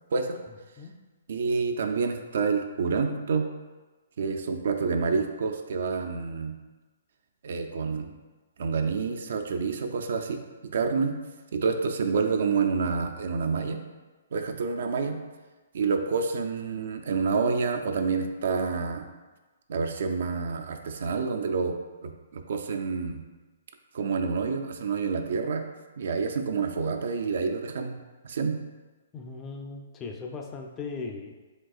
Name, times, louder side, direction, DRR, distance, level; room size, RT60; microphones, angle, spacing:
voice 1, 1.3-3.5 4.2-6.5 7.4-8.1 8.6-10.4 10.7-11.2 11.5-13.8 14.3-15.2 15.7-19.1 19.7-21.7 22.0-23.2 23.9-25.6 26.0-28.0 28.2-28.6, right 5 dB, 65° right, 5 dB, 0.4 m, -28 dB
voice 2, 29.1-31.4, left 4 dB, 20° left, 2 dB, 0.4 m, -38 dB
5.2 x 3.4 x 2.4 m, 1.2 s
hypercardioid pair, 140°, 0 cm